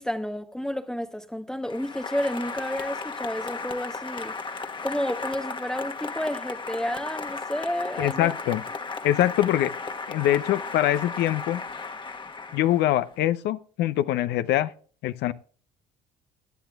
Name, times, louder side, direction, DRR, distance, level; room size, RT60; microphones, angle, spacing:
voice 1, 0.0-4.3 4.8-8.3, equal, 5° left, 0.9 m, -31 dB
Applause, 1.6-13.1, left 4 dB, 25° left, 1.3 m, -35 dB
voice 2, 8.0-8.6 9.0-9.7 10.1-11.6 12.5-14.7 15.0-15.3, left 13 dB, 70° left, 0.6 m, -23 dB
18.5 x 10.5 x 2.4 m
supercardioid pair, 75°, 18 cm